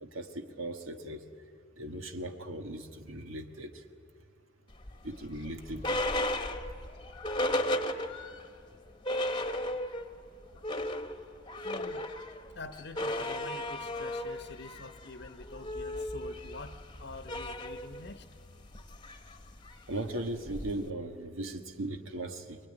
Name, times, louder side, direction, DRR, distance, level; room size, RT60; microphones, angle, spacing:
voice 1, 0.0-1.2 1.8-3.8 5.0-6.0 19.9-22.6, right 1 dB, 90° right, 5 dB, 1.6 m, -38 dB
sound 1, 4.8-8.5 8.8-8.9 9.0-10.1 10.4-20.9, left 1 dB, 25° left, 1.1 m, -35 dB
voice 2, 11.6-12.1 12.5-18.3, left 3 dB, 55° left, 8 dB, 0.9 m, -46 dB
23.0 x 22.5 x 10.0 m, 2.3 s
head